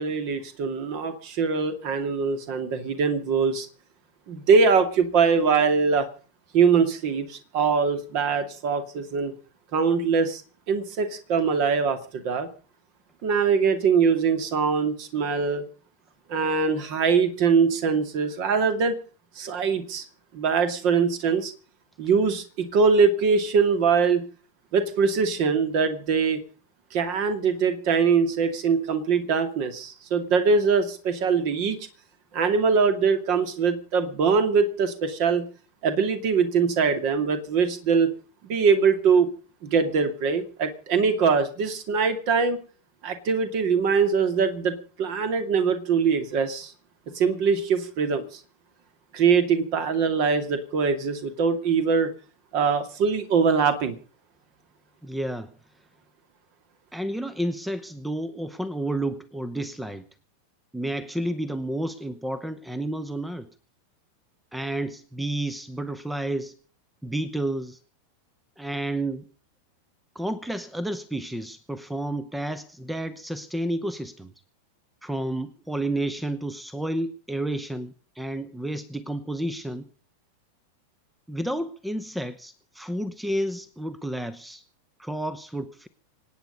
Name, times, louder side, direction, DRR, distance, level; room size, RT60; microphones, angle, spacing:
voice 1, 0.0-3.7 4.3-6.1 6.5-9.3 9.7-10.4 10.7-12.5 13.2-15.6 16.3-19.0 19.4-20.0 20.3-21.5 22.0-24.2 24.7-26.4 26.9-31.8 32.3-35.5 35.8-38.1 38.4-39.3 39.6-42.6 43.0-46.7 47.1-48.4 49.1-52.1 52.5-54.0, right 5 dB, 45° right, 9 dB, 2.4 m, -22 dB
voice 2, 55.0-55.5 56.9-60.1 60.7-63.5 64.5-66.5 67.0-67.8 68.6-69.3 70.1-74.3 75.0-79.8 81.3-84.6 85.0-85.9, right 1 dB, 5° right, 15 dB, 0.9 m, -31 dB
25.5 x 9.3 x 5.3 m, 0.40 s
figure-of-eight pair, 90°, 0 cm